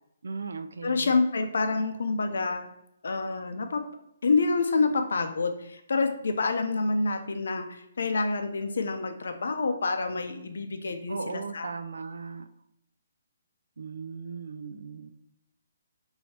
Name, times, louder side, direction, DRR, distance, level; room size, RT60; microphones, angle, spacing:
voice 1, 0.2-1.1 11.1-12.5 13.8-15.1, right 5 dB, 90° right, 11 dB, 0.3 m, -37 dB
voice 2, 0.8-2.7 3.0-3.8 4.2-11.7, left 3 dB, 70° left, 6 dB, 0.5 m, -27 dB
3.2 x 2.7 x 4.2 m, 0.79 s
hypercardioid pair, 170°, 0 cm